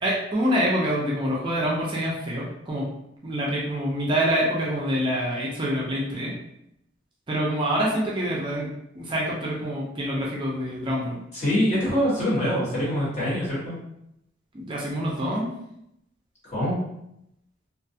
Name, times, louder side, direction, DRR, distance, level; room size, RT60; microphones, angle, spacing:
voice 1, 0.0-2.9 3.2-6.4 7.3-8.7 8.9-11.2 14.5-15.5, equal, 25° right, -4 dB, 0.4 m, -26 dB
voice 2, 11.3-13.8 16.4-16.8, equal, 40° left, -9 dB, 1.3 m, -24 dB
2.4 x 2.3 x 2.6 m, 0.79 s
head